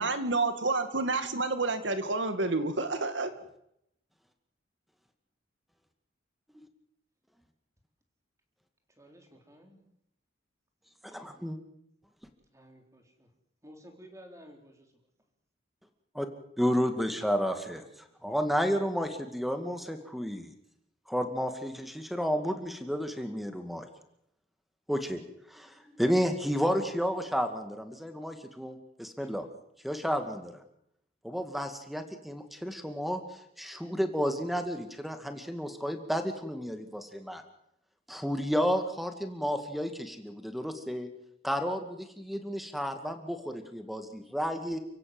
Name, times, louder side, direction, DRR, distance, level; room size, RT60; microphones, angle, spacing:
voice 1, 0.0-3.3, right 3 dB, 75° right, 9 dB, 2.1 m, -29 dB
voice 2, 9.0-9.8 12.5-13.3 13.6-14.9 29.2-29.3, equal, 15° right, 3 dB, 4.1 m, -53 dB
voice 3, 11.0-11.6 16.1-16.3 16.6-20.5 21.1-23.9 24.9-25.2 25.5-29.4 29.8-30.5 31.2-33.2 33.6-37.4 38.1-41.1 41.4-44.8, equal, ahead, 7 dB, 2.2 m, -31 dB
30.0 x 16.0 x 7.9 m, 0.77 s
head